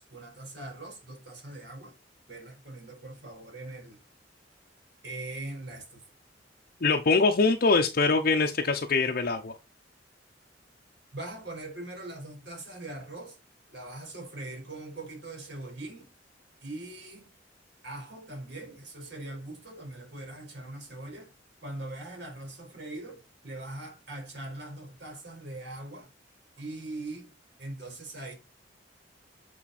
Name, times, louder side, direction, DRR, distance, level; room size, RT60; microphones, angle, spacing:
voice 1, 0.0-1.9 2.3-4.0 5.0-6.0 11.1-13.4 13.7-16.1 16.6-17.3 17.8-21.3 21.6-26.1 26.6-27.3 27.6-28.3, right 2 dB, 65° right, 4.5 m, -41 dB
voice 2, 6.8-9.6, left 4 dB, 50° left, 0.8 m, -23 dB
8.6 x 4.4 x 4.2 m
head